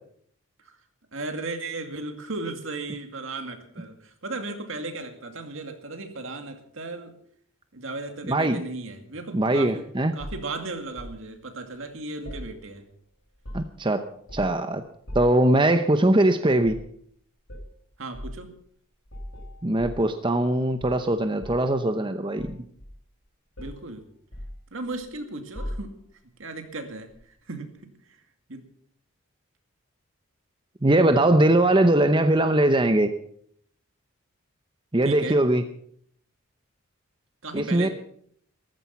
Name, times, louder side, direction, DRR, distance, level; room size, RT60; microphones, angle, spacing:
voice 1, 1.1-7.1 7.7-9.8 10.1-12.9 18.0-18.5 23.6-24.1 24.7-25.9 26.4-27.1 27.5-27.9 28.5-28.7 35.0-35.4 37.4-37.9, right 3 dB, 65° right, 6 dB, 2.3 m, -35 dB
voice 2, 8.3-8.6 9.3-10.1 13.5-14.1 14.3-14.8 15.1-16.7 19.6-22.7 30.8-33.1 34.9-35.6 37.5-37.9, right 1 dB, 20° right, 8 dB, 0.7 m, -21 dB
sound 1, 10.2-11.2 12.2-13.0 13.3-13.9 14.3-14.6 15.1-15.5 16.6-16.9 17.5-17.7 18.1-18.4 19.1-20.5 20.8-21.7 22.4-23.2 23.6-23.9 24.3-25.1 25.5-26.2 27.1-27.3, equal, 60° left, 7.9 m, -39 dB
14.5 x 14.0 x 5.8 m, 0.63 s
head